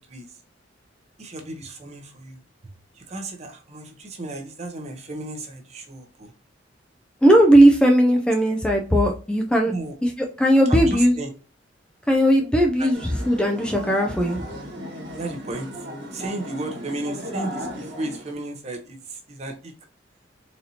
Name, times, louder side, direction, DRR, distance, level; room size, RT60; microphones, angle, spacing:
voice 1, 0.1-0.4 1.2-2.4 2.9-6.3 9.7-10.0 10.7-11.3 12.8-12.9 15.1-15.8 16.1-19.7, right 2 dB, 35° right, 3 dB, 0.7 m, -34 dB
voice 2, 7.2-9.7 10.0-10.1 10.4-11.1 12.1-14.4, right 1 dB, 5° left, 2 dB, 0.3 m, -17 dB
sound 1, 12.9-18.3, equal, 60° right, 1.3 m, -35 dB
4.0 x 2.7 x 2.7 m, 0.37 s
head